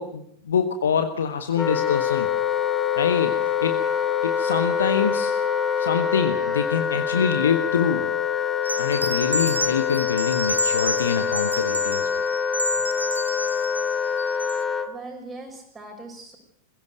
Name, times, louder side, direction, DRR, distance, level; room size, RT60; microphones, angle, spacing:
voice 1, 0.0-2.3 3.0-3.8 4.2-5.3 5.8-8.1 8.8-12.1, left 7 dB, 65° left, 7 dB, 1.4 m, -25 dB
Wind instrument woodwind instrument, 1.6-14.9, left 7 dB, 20° left, 1.7 m, -25 dB
sound 1, 8.6-14.6, equal, 85° right, 1.0 m, -29 dB
voice 2, 14.9-16.4, right 2 dB, 15° right, 4 dB, 6.2 m, -40 dB
21.0 x 16.5 x 8.0 m, 0.67 s
figure-of-eight pair, 90°, 0 cm